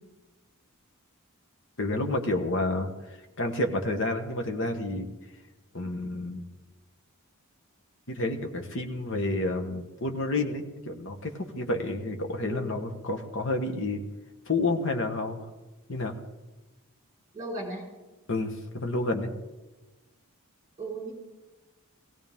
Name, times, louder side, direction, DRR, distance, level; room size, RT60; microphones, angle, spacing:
voice 1, 1.8-2.9 3.4-5.1 5.7-6.4 8.1-14.0 14.5-15.4 15.9-16.2 18.3-19.3, left 2 dB, 60° left, 4 dB, 1.4 m, -29 dB
voice 2, 17.3-17.8 20.8-21.1, right 2 dB, 20° right, -2 dB, 4.5 m, -35 dB
17.0 x 17.0 x 3.6 m, 1.1 s
head